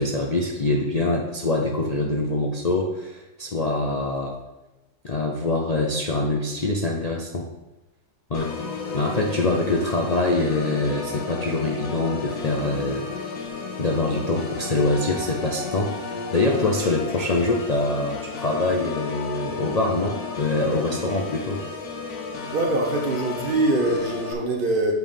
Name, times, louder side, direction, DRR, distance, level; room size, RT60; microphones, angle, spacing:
voice 1, 0.0-4.3 5.0-7.5 8.3-8.5 8.9-13.3 13.8-21.6, left 2 dB, 45° left, 0 dB, 0.5 m, -24 dB
Organ, 8.3-24.3, left 4 dB, 70° left, 1.3 m, -33 dB
voice 2, 22.5-24.9, right 2 dB, 45° right, 1 dB, 0.9 m, -23 dB
7.8 x 3.4 x 5.3 m, 0.98 s
omnidirectional pair, 1.5 m